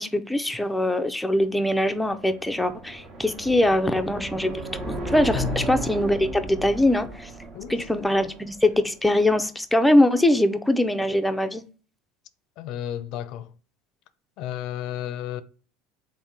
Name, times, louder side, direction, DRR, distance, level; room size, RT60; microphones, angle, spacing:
voice 1, 0.0-7.3 7.7-11.6, left 1 dB, 5° left, 0.5 m, -22 dB
sound 1, 1.5-8.8, right 3 dB, 40° right, 1.1 m, -35 dB
voice 2, 5.3-5.9 7.5-8.3 12.6-13.5 14.4-15.4, left 12 dB, 60° left, 0.4 m, -33 dB
3.6 x 2.6 x 4.3 m
supercardioid pair, 105°, 0 cm